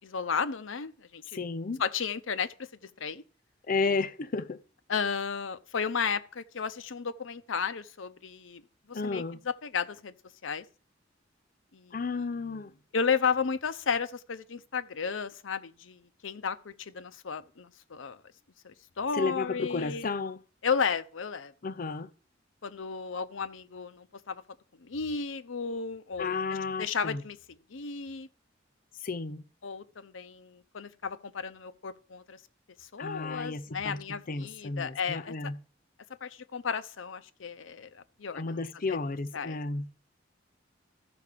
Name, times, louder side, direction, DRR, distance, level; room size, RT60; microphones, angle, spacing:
voice 1, 0.0-1.4 1.8-2.7 3.0-3.2 4.9-8.6 8.9-10.1 10.4-10.6 11.7-12.0 12.9-18.2 18.6-20.1 20.6-21.5 22.6-24.4 24.8-26.4 26.8-27.4 27.7-28.3 29.6-32.4 32.8-35.3 36.2-38.6 38.9-39.0 39.3-39.6, left 6 dB, 90° left, 0.7 m, -33 dB
voice 2, 1.3-1.8 3.7-4.6 8.9-9.4 11.9-12.7 19.1-20.4 21.6-22.1 26.2-27.2 29.0-29.4 33.0-35.6 38.4-39.9, left 4 dB, 45° left, 0.6 m, -32 dB
14.0 x 4.8 x 6.7 m
head